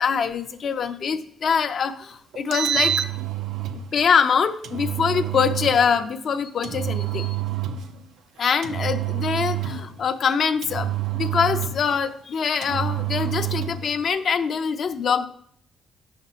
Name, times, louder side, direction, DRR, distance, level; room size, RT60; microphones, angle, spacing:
voice 1, 0.0-3.0 3.9-7.4 8.4-15.3, left 6 dB, 55° left, 9 dB, 0.5 m, -24 dB
Engine, 2.3-3.8 4.6-5.8 6.6-7.9 8.6-9.9 10.6-12.0 12.6-13.8, right 11 dB, 80° right, 0.4 m, -27 dB
8.1 x 5.8 x 3.0 m, 0.66 s
cardioid pair, 90°, 0 cm